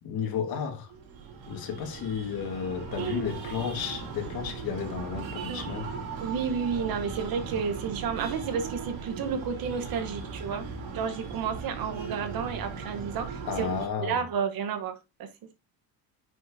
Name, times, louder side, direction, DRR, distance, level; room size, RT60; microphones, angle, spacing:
voice 1, 0.0-0.9 1.5-5.9 13.4-14.2, left 6 dB, 50° left, 2.1 m, -33 dB
Breathing, 0.9-13.9, right 5 dB, 70° right, 4.0 m, -38 dB
voice 2, 3.0-3.3 5.5-5.6 6.2-10.6 10.9-13.7 14.0-15.3, right 6 dB, 50° right, 1.2 m, -31 dB
9.8 x 6.2 x 2.8 m
cardioid pair, 150°, 45 cm